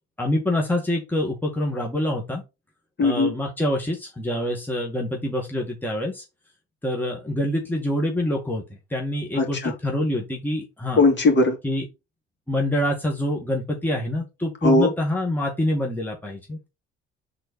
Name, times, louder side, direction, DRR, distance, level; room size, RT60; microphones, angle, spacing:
voice 1, 0.2-2.4 3.0-6.2 6.8-8.6 8.9-11.0 11.6-11.9 12.5-16.7, left 1 dB, 5° left, 1.8 m, -26 dB
voice 2, 3.0-3.3 9.3-9.7 10.9-11.6 14.6-14.9, left 2 dB, 35° left, 2.9 m, -19 dB
4.3 x 4.0 x 5.4 m
hypercardioid pair, 55°, 32 cm